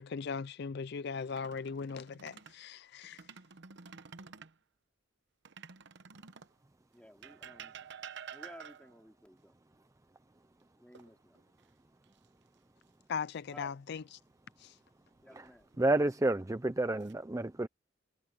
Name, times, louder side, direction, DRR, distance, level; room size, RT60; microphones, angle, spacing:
voice 1, 0.0-3.3 13.1-14.2 14.6-14.8, left 5 dB, 55° left, 0.4 m, -39 dB
sound 1, 1.2-2.6 3.0-4.6 5.4-6.6 7.2-9.0 10.9-11.6 12.0-12.3 15.2-15.8 16.5-17.1, right 7 dB, 60° right, 0.9 m, -50 dB
voice 2, 6.9-7.7 8.3-9.6 10.7-11.4 13.5-13.8 15.2-15.7, equal, 5° left, 3.5 m, -55 dB
voice 3, 15.8-17.7, right 2 dB, 15° right, 0.5 m, -30 dB
head